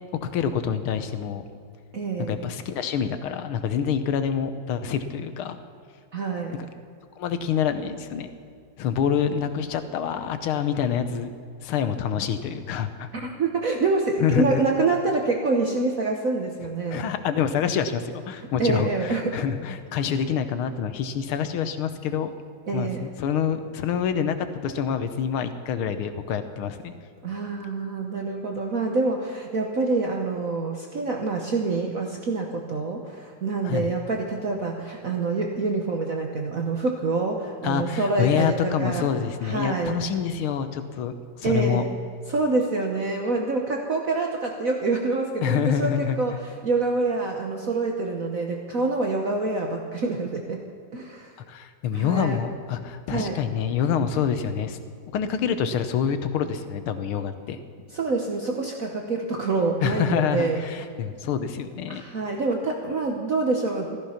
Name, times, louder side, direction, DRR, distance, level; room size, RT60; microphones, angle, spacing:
voice 1, 0.2-1.4 2.2-5.6 7.2-8.3 8.8-11.4 11.6-13.1 14.2-14.7 16.9-22.3 22.7-26.9 33.6-33.9 37.6-41.8 45.4-46.2 51.5-54.8 55.1-57.6 59.8-62.0, left 8 dB, 90° left, 10 dB, 1.8 m, -26 dB
voice 2, 1.9-2.3 6.1-6.6 13.1-17.0 18.4-19.4 22.7-23.1 27.2-39.1 39.4-40.0 41.4-41.9 42.3-50.6 50.9-51.3 51.9-52.4 53.1-53.4 57.9-60.6 61.9-64.0, right 3 dB, 50° right, 1 dB, 1.3 m, -26 dB
14.5 x 14.0 x 5.8 m, 2.2 s
omnidirectional pair, 2.3 m